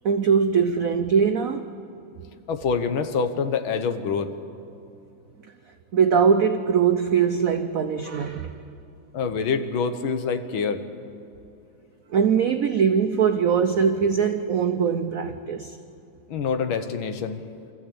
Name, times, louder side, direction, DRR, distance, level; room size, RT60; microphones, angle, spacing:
voice 1, 0.0-1.7 5.9-8.5 12.1-15.8, right 6 dB, 75° right, 7 dB, 0.8 m, -21 dB
voice 2, 2.5-4.3 9.1-10.8 16.3-17.4, left 5 dB, 70° left, 9 dB, 1.8 m, -26 dB
25.0 x 14.5 x 8.6 m, 2.7 s
omnidirectional pair, 2.4 m